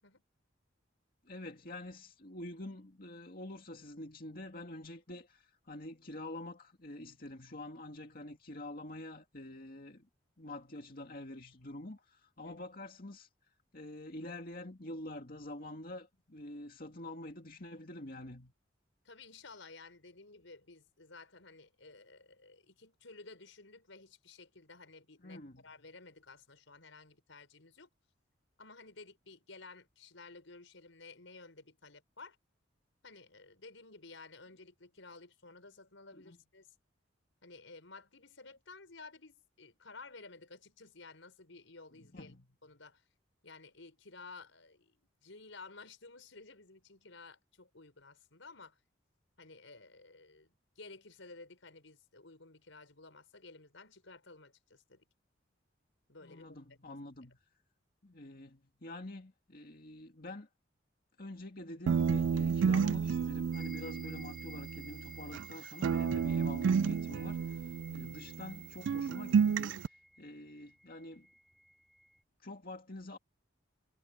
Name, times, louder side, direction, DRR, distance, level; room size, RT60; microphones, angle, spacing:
voice 1, 1.2-10.1 10.4-13.3 13.7-18.5 25.2-25.6 36.1-36.4 42.0-42.5 56.2-57.4 58.0-60.5 61.2-71.3 72.4-73.2, left 1 dB, 50° left, 2.2 m, -47 dB
voice 2, 19.0-27.9 28.6-32.4 33.0-36.7 37.4-42.3 42.6-43.0 43.4-48.8 49.4-55.0 56.1-56.5 68.0-68.2, left 3 dB, 80° left, 4.9 m, -54 dB
sound 1, 61.9-65.5 65.8-68.6 68.9-69.9, right 6 dB, 70° right, 0.3 m, -31 dB
sound 2, 63.5-72.2, equal, ahead, 3.9 m, -56 dB
head